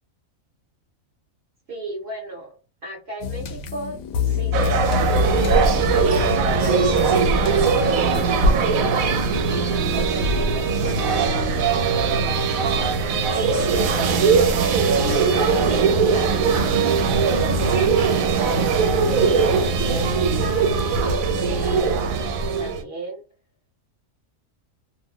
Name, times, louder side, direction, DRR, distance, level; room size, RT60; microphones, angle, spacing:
voice 1, 1.7-2.5 2.8-9.2 9.9-12.4 13.5-17.3 17.7-23.2, right 2 dB, 50° right, -2 dB, 1.0 m, -35 dB
sound 1, 3.2-8.3, left 7 dB, 75° left, 1.0 m, -26 dB
sound 2, 4.5-22.8, right 4 dB, 85° right, 1.0 m, -20 dB
2.6 x 2.1 x 3.6 m, 0.32 s
omnidirectional pair, 1.4 m